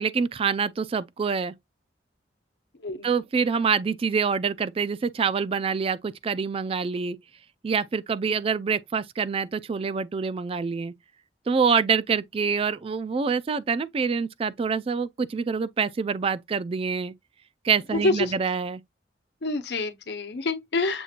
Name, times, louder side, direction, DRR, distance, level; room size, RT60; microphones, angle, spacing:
voice 1, 0.0-1.5 3.0-7.2 7.6-10.9 11.5-17.1 17.6-18.8, right 5 dB, 35° right, 0.3 m, -26 dB
voice 2, 19.4-21.0, left 2 dB, 70° left, 0.9 m, -27 dB
7.0 x 2.9 x 2.4 m
head